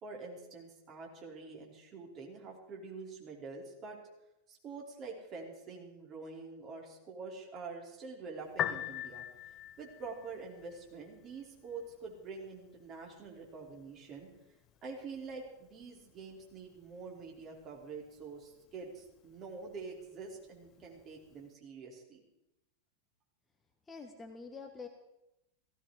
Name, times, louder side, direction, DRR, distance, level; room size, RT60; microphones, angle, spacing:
voice 1, 0.0-4.0 4.5-9.2 9.8-14.3 14.8-22.2, right 4 dB, 30° right, -1 dB, 4.6 m, -46 dB
Piano, 8.4-21.5, left 11 dB, 30° left, 1.0 m, -46 dB
voice 2, 23.9-24.9, left 4 dB, 15° left, 5 dB, 1.6 m, -46 dB
17.0 x 16.5 x 5.0 m, 0.89 s
figure-of-eight pair, 90°, 0 cm